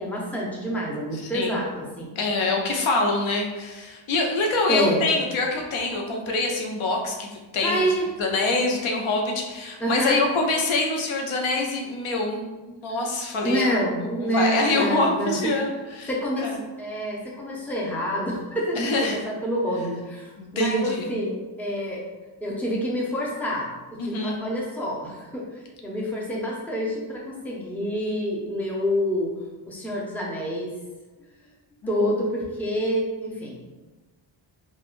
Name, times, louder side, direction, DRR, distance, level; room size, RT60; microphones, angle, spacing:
voice 1, 0.0-2.1 4.7-5.1 7.6-8.1 9.8-10.2 13.4-15.4 16.1-22.0 22.4-29.3 29.7-30.7 31.9-33.6, equal, 5° left, -3 dB, 0.6 m, -27 dB
voice 2, 1.1-1.6 2.2-7.8 8.2-13.8 14.2-16.1 16.4-16.6 18.8-19.2 20.4-21.1 24.0-24.4 31.8-32.0, left 2 dB, 75° left, 1 dB, 0.7 m, -25 dB
3.4 x 2.3 x 2.4 m, 1.2 s
cardioid pair, 100°, 49 cm